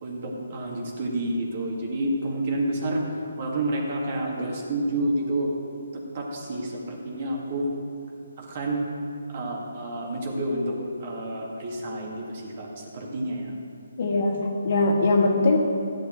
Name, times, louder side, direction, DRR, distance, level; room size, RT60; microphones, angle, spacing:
voice 1, 0.0-5.5 6.1-7.7 8.4-8.9 9.3-13.5, right 1 dB, 40° right, -1 dB, 2.2 m, -29 dB
voice 2, 14.0-15.6, left 2 dB, 55° left, 1 dB, 1.8 m, -21 dB
13.5 x 10.0 x 4.5 m, 2.5 s
hypercardioid pair, 150°, 0 cm